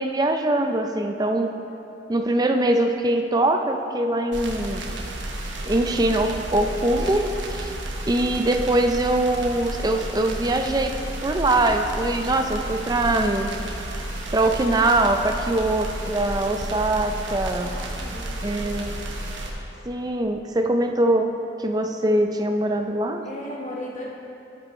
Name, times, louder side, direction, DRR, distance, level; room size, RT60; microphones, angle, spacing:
voice 1, 0.0-1.5 2.1-4.8 5.6-7.7 8.1-10.9 11.2-13.5 14.3-17.7 18.4-18.9 19.9-21.3 21.6-23.2, right 1 dB, 20° right, 4 dB, 0.4 m, -22 dB
sound 1, 4.3-19.5, right 1 dB, 75° right, 1.1 m, -32 dB
voice 2, 17.6-18.9 23.2-24.0, left 1 dB, 40° left, -4 dB, 1.0 m, -37 dB
11.5 x 8.3 x 3.2 m, 2.8 s
head